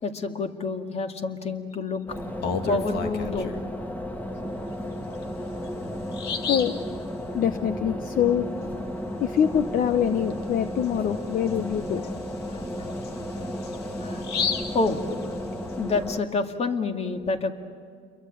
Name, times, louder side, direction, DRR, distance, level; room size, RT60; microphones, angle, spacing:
voice 1, 0.0-2.0 2.7-3.5 12.5-12.9 14.0-14.2 14.7-15.0 15.8-17.5, left 3 dB, 40° left, 6 dB, 2.2 m, -28 dB
sound 1, 2.1-16.2, equal, 10° left, 1.7 m, -34 dB
Bird vocalization bird call bird song, 2.2-3.7 5.1-5.2 5.7-5.8 6.1-6.8 10.3-10.4 10.8-10.9 11.5-15.7, left 6 dB, 75° left, 2.1 m, -33 dB
voice 2, 6.5-6.8 7.3-8.7 9.2-12.1, left 9 dB, 55° left, 11 dB, 0.9 m, -24 dB
29.5 x 23.0 x 8.6 m, 2.3 s
cardioid pair, 110°, 17 cm